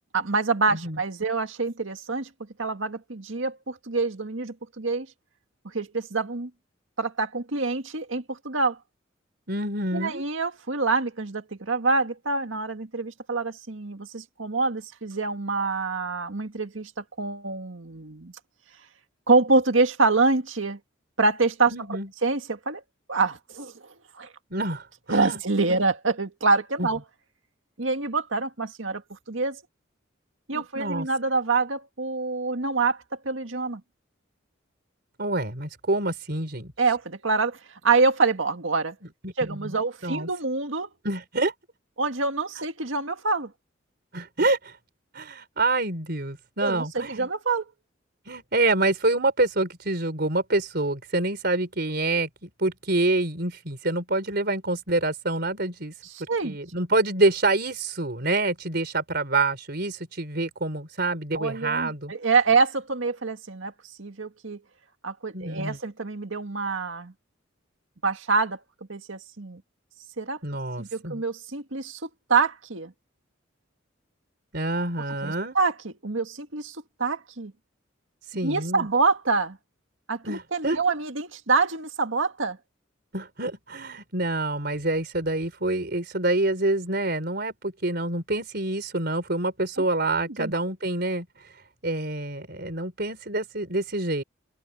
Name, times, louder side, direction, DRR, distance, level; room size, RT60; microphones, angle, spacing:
voice 1, 0.1-2.3 2.6-5.1 5.7-6.5 7.0-8.8 9.9-18.3 19.3-20.8 21.2-21.7 22.2-22.8 23.1-23.7 24.2-24.3 25.1-27.0 27.8-29.6 30.5-33.8 36.8-39.0 39.4-40.9 42.0-43.5 46.6-47.7 56.0-56.6 61.3-63.7 64.0-64.6 65.0-67.1 68.0-68.6 68.9-69.6 70.2-70.4 70.8-72.9 75.2-77.5 78.4-79.6 80.1-82.6 90.4-90.6, right 3 dB, 80° right, 1.9 m, -26 dB
voice 2, 9.5-10.2 21.7-22.1 24.5-25.4 26.8-26.9 30.5-31.1 35.2-36.7 39.2-39.8 40.0-40.3 41.0-41.5 44.1-44.8 45.1-47.3 48.3-55.9 56.4-62.1 65.3-65.8 70.4-71.2 74.5-75.6 78.3-78.9 80.2-80.8 83.1-91.5 91.8-94.2, right 2 dB, 55° right, 4.4 m, -27 dB
open air
head